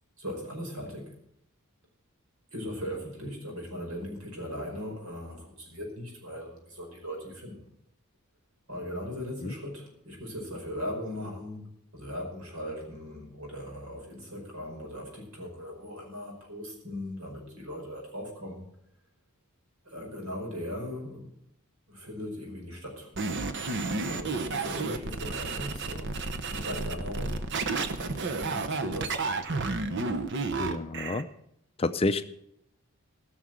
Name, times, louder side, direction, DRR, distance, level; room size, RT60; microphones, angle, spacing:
voice 1, 0.2-1.1 2.5-7.7 8.7-11.7 11.9-18.6 19.8-21.3 21.9-23.1 24.1-27.4 27.9-29.3, equal, 70° right, 0 dB, 5.1 m, -39 dB
sound 1, 23.2-31.2, right 3 dB, 55° right, 0.9 m, -31 dB
voice 2, 30.6-31.3 31.8-32.2, left 3 dB, 25° left, 11 dB, 0.4 m, -29 dB
16.5 x 6.4 x 7.6 m, 0.76 s
head